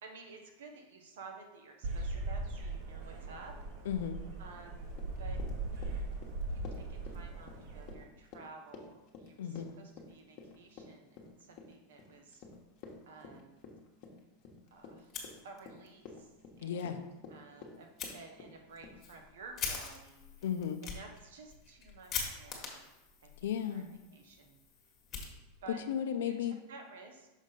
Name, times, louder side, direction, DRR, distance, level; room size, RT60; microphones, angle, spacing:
voice 1, 0.0-3.6 4.4-4.9 5.2-5.4 6.5-12.4 13.1-13.6 14.7-15.1 15.4-16.3 16.6-20.3 20.8-22.9 23.2-23.8 24.1-24.6 25.6-25.8 26.2-27.3, right 4 dB, 90° right, 3 dB, 1.2 m, -53 dB
sound 1, 1.8-7.9, right 2 dB, 50° right, 1.3 m, -39 dB
voice 2, 3.8-4.2 9.4-9.7 16.6-17.0 20.4-20.8 23.4-23.9 25.9-26.5, left 9 dB, 80° left, 8 dB, 0.6 m, -34 dB
Run, 4.9-19.0, left 4 dB, 45° left, 1.2 m, -51 dB
Fire, 15.0-15.9 16.2-16.3 16.8-16.9 18.0-18.1 18.7-25.8, left 5 dB, 30° left, 1.5 m, -43 dB
6.2 x 3.7 x 5.7 m, 1.0 s
supercardioid pair, 150°, 0 cm